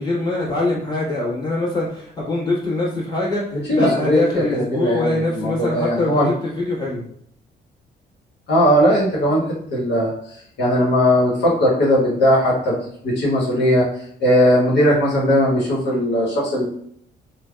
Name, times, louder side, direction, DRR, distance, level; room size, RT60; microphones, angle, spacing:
voice 1, 0.0-7.0, left 2 dB, 20° left, -6 dB, 1.4 m, -23 dB
voice 2, 3.5-6.3 8.5-9.4 9.7-12.7 13.0-16.6, equal, 65° left, -5 dB, 1.0 m, -18 dB
3.2 x 2.1 x 2.3 m, 0.66 s
cardioid pair, 80°, 19 cm